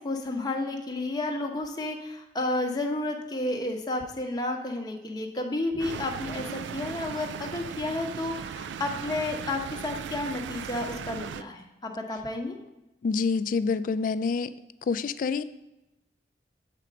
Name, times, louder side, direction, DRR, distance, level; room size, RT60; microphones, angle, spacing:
voice 1, 0.0-12.6, left 2 dB, 25° left, 2 dB, 0.8 m, -31 dB
sound 1, 5.8-11.4, right 7 dB, 90° right, 0.3 m, -37 dB
voice 2, 13.0-14.5 14.9-15.4, left 5 dB, 50° left, 13 dB, 0.3 m, -27 dB
7.5 x 4.4 x 5.0 m, 0.98 s
head